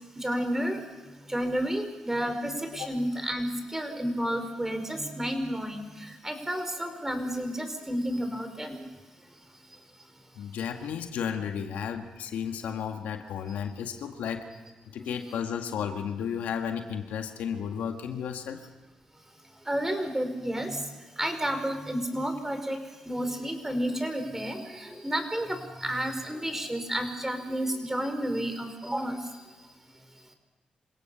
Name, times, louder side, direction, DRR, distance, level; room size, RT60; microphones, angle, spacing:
voice 1, 0.2-0.8 1.3-8.8 15.0-15.4 19.7-20.8 21.2-22.8 23.0-29.2, equal, 15° right, 7 dB, 5.0 m, -31 dB
voice 2, 10.4-14.5 14.9-18.6, left 7 dB, 85° left, 5 dB, 1.9 m, -33 dB
27.0 x 17.5 x 7.1 m, 1.2 s
supercardioid pair, 50°, 3 cm